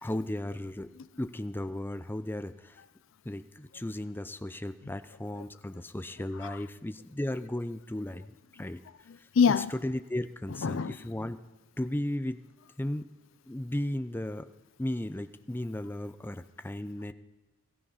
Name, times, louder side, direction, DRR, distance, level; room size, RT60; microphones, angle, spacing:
voice 1, 0.0-0.9 1.2-2.8 3.3-8.3 8.6-8.8 9.8-11.4 11.8-12.4 12.8-13.0 13.5-14.5 14.8-17.1, left 1 dB, 10° left, 0.5 m, -35 dB
voice 2, 9.1-9.7 10.5-11.1, left 6 dB, 65° left, 0.5 m, -27 dB
16.5 x 15.0 x 5.7 m
head